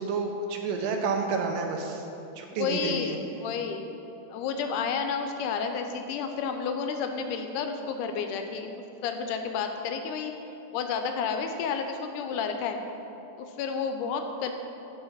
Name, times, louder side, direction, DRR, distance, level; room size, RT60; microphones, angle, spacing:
voice 1, 0.0-2.0 2.4-3.2, right 4 dB, 85° right, 3 dB, 2.4 m, -30 dB
voice 2, 2.5-3.9 4.3-8.7 9.0-10.3 10.7-12.8 13.4-14.5, left 6 dB, 80° left, 6 dB, 2.0 m, -31 dB
8.9 x 5.6 x 5.5 m, 2.9 s
omnidirectional pair, 3.8 m